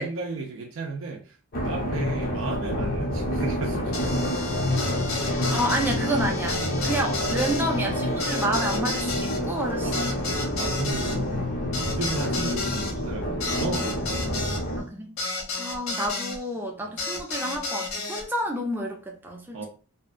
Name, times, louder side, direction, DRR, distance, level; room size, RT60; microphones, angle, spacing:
voice 1, 0.0-1.4 1.6-4.3 6.9-7.3 9.8-10.2 10.6-11.2 11.9-14.2 16.8-16.9 19.5-19.7, right 3 dB, 80° right, 0.5 m, -34 dB
sound 1, 1.5-14.8, equal, 45° left, 0.6 m, -28 dB
sound 2, 3.9-16.4 17.0-18.2, left 3 dB, 90° left, 0.6 m, -33 dB
voice 2, 5.2-10.4 14.8-15.1 15.5-19.6, right 1 dB, 10° right, 0.5 m, -30 dB
2.7 x 2.2 x 2.5 m
head